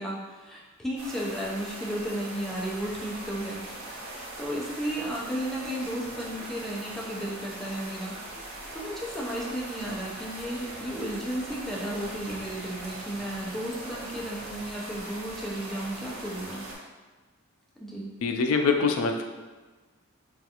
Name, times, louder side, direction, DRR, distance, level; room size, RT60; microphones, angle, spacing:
voice 1, 0.0-8.2 8.7-16.7 17.8-18.1, right 1 dB, ahead, -4 dB, 0.4 m, -34 dB
sound 1, 1.0-16.8, right 1 dB, 90° right, 0.7 m, -41 dB
voice 2, 18.2-19.2, left 4 dB, 85° left, 4 dB, 0.4 m, -24 dB
3.4 x 2.3 x 2.8 m, 1.3 s
head